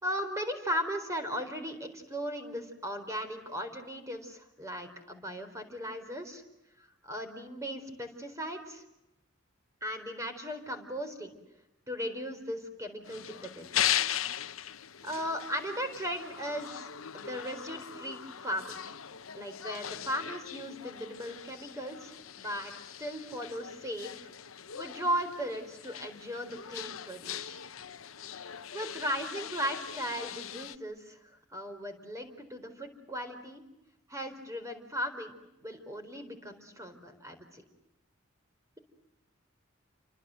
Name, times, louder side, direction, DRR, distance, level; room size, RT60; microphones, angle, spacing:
voice 1, 0.0-6.4 6.8-8.8 9.8-11.4 11.9-13.9 15.0-16.9 17.1-18.8 19.3-22.7 23.0-24.3 24.7-27.6 28.7-33.6 34.1-37.6, equal, 15° right, 6 dB, 4.3 m, -37 dB
sound 1, 13.0-30.8, left 10 dB, 80° left, 1.0 m, -39 dB
29.5 x 25.0 x 7.8 m, 0.88 s
head